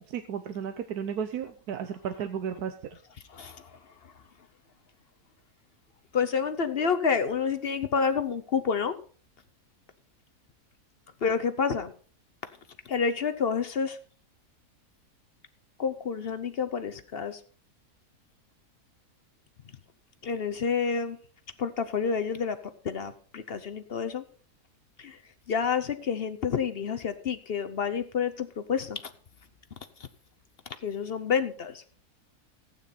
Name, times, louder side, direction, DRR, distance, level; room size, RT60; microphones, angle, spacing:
voice 1, 0.0-2.7, right 8 dB, 75° right, 8 dB, 1.3 m, -34 dB
voice 2, 3.3-4.1 6.1-8.9 11.2-11.9 12.9-14.0 15.8-17.4 20.2-21.2 21.6-22.6 22.8-24.2 25.0-25.2 25.5-29.1 30.8-31.8, left 6 dB, 50° left, 10 dB, 0.8 m, -29 dB
15.0 x 9.1 x 4.2 m, 0.44 s
omnidirectional pair, 1.7 m